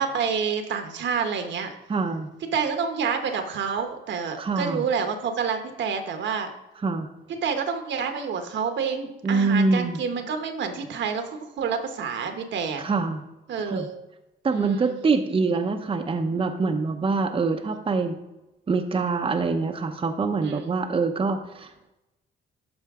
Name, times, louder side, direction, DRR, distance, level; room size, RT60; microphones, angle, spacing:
voice 1, 0.0-1.7 2.5-6.5 7.4-12.9 13.5-13.9 14.5-15.0 20.4-20.7, right 6 dB, 65° right, 6 dB, 1.1 m, -28 dB
voice 2, 1.9-2.3 4.4-4.8 6.8-7.1 9.2-10.0 12.8-13.2 13.7-13.9 14.4-18.2 18.7-21.9, right 4 dB, 25° right, 4 dB, 0.7 m, -25 dB
13.0 x 4.5 x 3.6 m, 0.97 s
cardioid pair, 90°, 20 cm